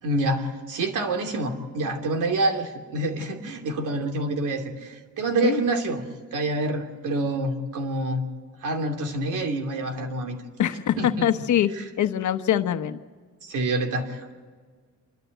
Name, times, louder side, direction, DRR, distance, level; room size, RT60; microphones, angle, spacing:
voice 1, 0.0-8.3 8.6-10.4 11.0-11.3 13.4-14.3, right 2 dB, 85° right, 4 dB, 2.9 m, -27 dB
voice 2, 10.6-13.0, left 10 dB, 70° left, 10 dB, 1.1 m, -24 dB
28.0 x 12.5 x 7.9 m, 1.5 s
cardioid pair, 120°, 30 cm